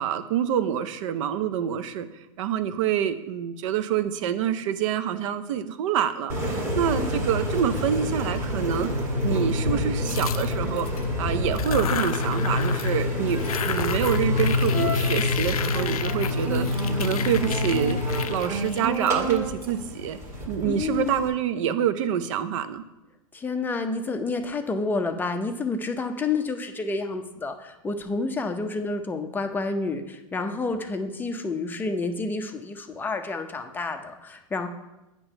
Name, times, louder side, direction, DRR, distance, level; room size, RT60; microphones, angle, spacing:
voice 1, 0.0-2.1 2.4-8.9 9.2-20.2 20.5-22.8, right 9 dB, 60° right, 11 dB, 0.6 m, -27 dB
Engine, 6.3-21.3, left 2 dB, 15° right, 1.7 m, -27 dB
voice 2, 6.9-7.3 20.6-21.2 23.3-34.7, left 3 dB, 10° left, 5 dB, 0.6 m, -29 dB
sound 1, 10.0-11.0 11.5-13.0 13.3-19.7, left 9 dB, 85° left, 0.4 m, -33 dB
8.6 x 3.0 x 5.4 m, 0.98 s
hypercardioid pair, 115°, 18 cm